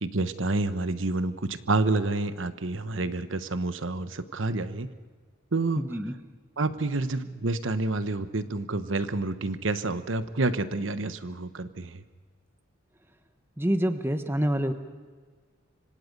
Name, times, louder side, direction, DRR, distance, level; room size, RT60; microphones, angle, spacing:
voice 1, 0.0-4.9 5.5-5.8 6.6-12.0, right 2 dB, 85° right, 12 dB, 1.1 m, -28 dB
voice 2, 5.8-6.1 13.6-14.7, equal, 10° right, 8 dB, 1.1 m, -26 dB
25.5 x 25.0 x 5.4 m, 1.5 s
head